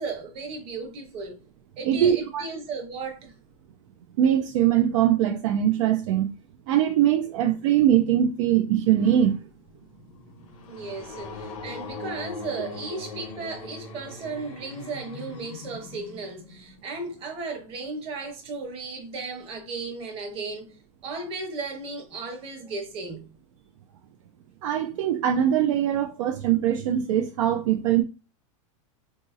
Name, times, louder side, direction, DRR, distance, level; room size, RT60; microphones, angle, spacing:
voice 1, 0.0-1.4 1.8-3.3 10.7-23.3, right 3 dB, 35° right, 1.0 m, -35 dB
voice 2, 1.8-2.4 4.2-6.3 6.7-9.4 24.6-28.0, right 10 dB, 65° right, 0.4 m, -22 dB
sound 1, 9.5-16.9, left 3 dB, 75° left, 0.8 m, -40 dB
3.8 x 2.7 x 2.4 m
supercardioid pair, 140°, 17 cm